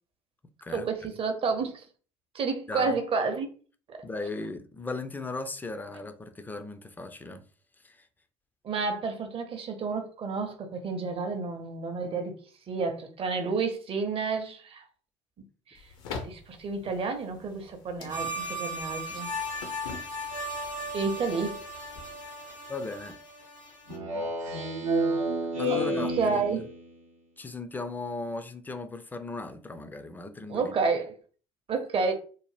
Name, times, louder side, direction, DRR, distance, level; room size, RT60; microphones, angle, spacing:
voice 1, 0.7-1.9 2.3-3.5 3.9-4.0 8.6-12.4 12.7-14.9 15.7-15.8 16.2-19.4 20.9-21.5 25.7-25.8 26.1-26.6 30.5-31.1 31.7-32.1, right 4 dB, 35° right, 0.6 m, -30 dB
voice 2, 4.0-7.4 7.8-8.1 22.7-23.2 25.6-26.6 27.4-30.7, left 3 dB, 10° left, 0.4 m, -37 dB
sound 1, 15.7-22.3, left 4 dB, 65° left, 0.6 m, -45 dB
sound 2, 18.1-24.0, equal, 90° left, 1.1 m, -37 dB
Speech synthesizer, 23.9-26.9, right 1 dB, 85° right, 0.7 m, -29 dB
2.7 x 2.1 x 3.2 m
figure-of-eight pair, 60°, 17 cm